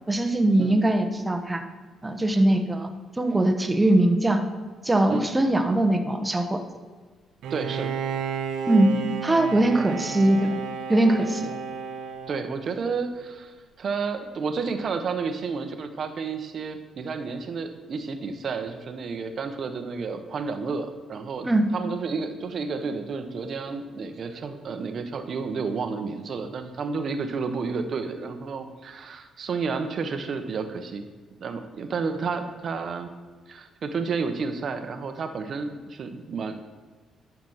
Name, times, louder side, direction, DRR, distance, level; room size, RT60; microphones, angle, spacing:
voice 1, 0.1-1.6 2.0-2.9 3.2-4.4 4.8-6.6 8.7-8.9 9.2-10.6 10.9-11.6 21.4-21.7, right 1 dB, 15° right, 6 dB, 1.1 m, -21 dB
Bowed string instrument, 7.4-13.0, right 6 dB, 80° right, 1.2 m, -32 dB
voice 2, 7.5-7.9 12.3-21.5 21.7-31.1 31.4-33.1 33.5-36.6, right 4 dB, 55° right, 7 dB, 0.9 m, -31 dB
10.5 x 6.0 x 5.7 m, 1.4 s
cardioid pair, 90°, 0 cm